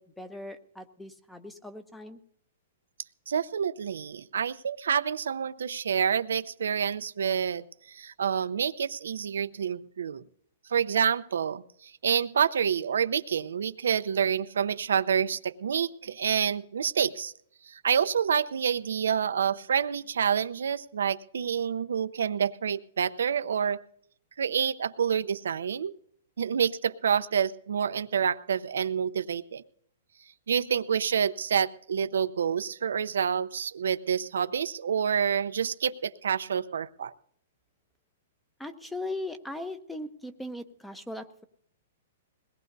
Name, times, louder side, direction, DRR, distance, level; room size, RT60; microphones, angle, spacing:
voice 1, 0.0-2.2 38.6-41.4, left 2 dB, 5° left, 10 dB, 0.8 m, -39 dB
voice 2, 3.3-10.2 10.7-17.3 17.7-23.8 24.4-25.9 26.4-29.6 30.5-37.1, right 7 dB, 85° right, 12 dB, 0.7 m, -28 dB
21.5 x 18.0 x 2.7 m, 0.65 s
hypercardioid pair, 150°, 0 cm